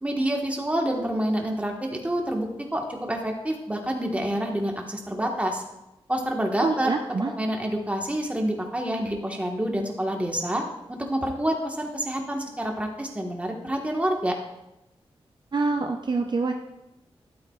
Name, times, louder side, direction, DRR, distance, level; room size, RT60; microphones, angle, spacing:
voice 1, 0.0-5.6 6.1-6.9 7.4-10.6 10.9-14.3, right 1 dB, 15° right, 1 dB, 1.5 m, -27 dB
voice 2, 6.6-7.3 15.5-16.5, right 3 dB, 45° right, 3 dB, 0.6 m, -26 dB
12.5 x 8.3 x 2.4 m, 0.91 s
wide cardioid pair, 90°, 10 cm